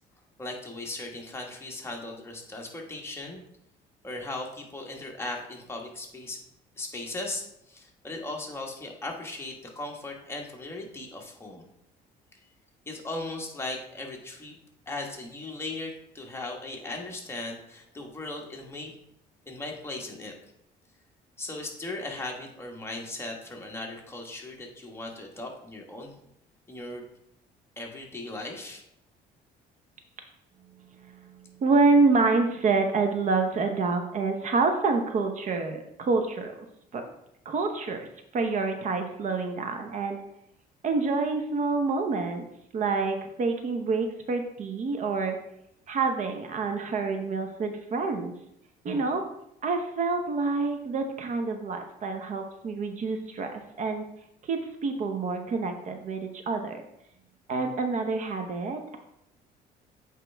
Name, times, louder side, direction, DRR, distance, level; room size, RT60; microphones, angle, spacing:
voice 1, 0.4-3.4 4.0-6.4 6.8-11.6 12.8-14.6 14.9-18.9 19.5-20.3 21.4-26.1 26.7-27.1 27.8-28.8, left 2 dB, 15° left, 0 dB, 1.4 m, -38 dB
voice 2, 31.6-36.5 36.9-37.0 37.4-38.1 38.3-40.2 40.8-42.4 42.7-45.4 45.9-48.3 48.8-49.3 49.6-54.0 54.4-56.8 57.5-59.0, right 4 dB, 45° right, 6 dB, 0.8 m, -27 dB
8.1 x 4.5 x 3.4 m, 0.77 s
cardioid pair, 110°, 17 cm